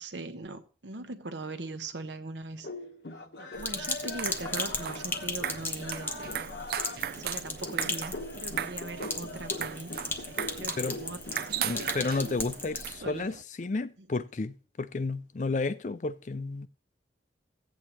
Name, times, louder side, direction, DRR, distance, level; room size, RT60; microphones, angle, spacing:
voice 1, 0.0-2.7 3.4-6.5 7.1-11.2 11.5-11.7 12.0-12.4 13.0-13.3 14.0-14.1, right 2 dB, 75° right, 1.0 m, -41 dB
sound 1, 2.6-12.2, left 2 dB, 70° left, 1.1 m, -42 dB
Sink (filling or washing), 3.6-12.9, left 2 dB, 10° left, 0.8 m, -37 dB
sound 2, 4.0-13.4, right 9 dB, 55° right, 0.4 m, -38 dB
voice 2, 11.6-16.7, left 3 dB, 40° left, 0.4 m, -32 dB
15.0 x 8.3 x 3.0 m
head